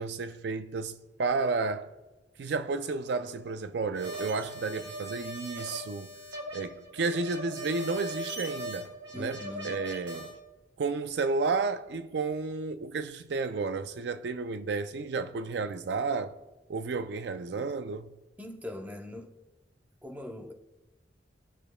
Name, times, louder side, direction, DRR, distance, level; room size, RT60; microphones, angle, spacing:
voice 1, 0.0-1.9 2.4-6.1 6.5-10.3 10.8-16.3 16.7-18.1, right 4 dB, 65° right, 0.4 m, -32 dB
sound 1, 3.9-10.3, equal, 80° right, 2.3 m, -39 dB
voice 2, 9.1-9.8 18.4-19.3 20.0-20.5, left 1 dB, 10° right, 0.6 m, -41 dB
19.5 x 6.7 x 2.2 m
head